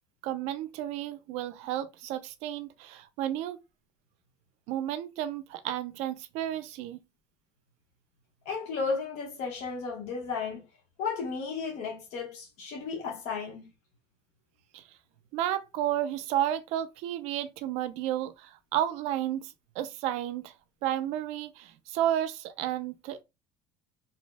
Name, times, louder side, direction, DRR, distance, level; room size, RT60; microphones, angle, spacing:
voice 1, 0.2-3.6 4.7-7.0 14.7-14.9 15.3-20.5 20.8-23.2, right 12 dB, 70° right, 0.4 m, -32 dB
voice 2, 8.5-10.6 11.0-13.7, left 5 dB, 65° left, 0.9 m, -34 dB
2.7 x 2.0 x 3.2 m
cardioid pair, 150°, 12 cm